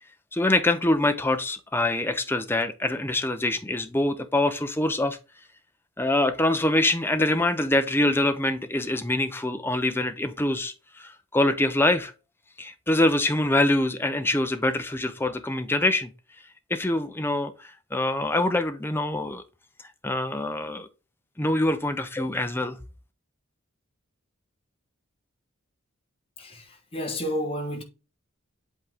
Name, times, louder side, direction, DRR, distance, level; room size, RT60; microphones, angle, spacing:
voice 1, 0.3-5.2 6.0-12.1 12.6-16.1 16.7-19.4 20.0-20.9 21.4-22.8, left 1 dB, 10° left, 0.7 m, -24 dB
voice 2, 26.4-27.8, equal, 25° left, 1.3 m, -31 dB
8.2 x 3.7 x 3.6 m
head